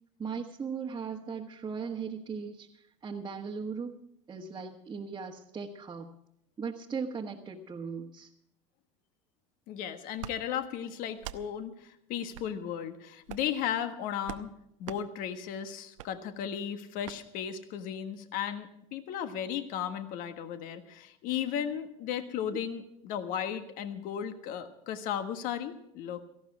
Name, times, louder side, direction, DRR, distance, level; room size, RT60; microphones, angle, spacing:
voice 1, 0.2-6.1 6.6-8.3 22.5-22.6, right 5 dB, 25° right, -2 dB, 1.4 m, -38 dB
voice 2, 9.7-14.5 14.8-26.2, left 9 dB, 60° left, 9 dB, 1.5 m, -35 dB
sound 1, 10.2-10.4 11.2-11.4 12.3-12.5 13.2-13.5 14.2-14.5 14.8-15.0 16.0-16.1 17.0-17.2, right 13 dB, 80° right, 0.8 m, -42 dB
18.0 x 14.5 x 4.8 m, 0.77 s
hypercardioid pair, 85°, 16 cm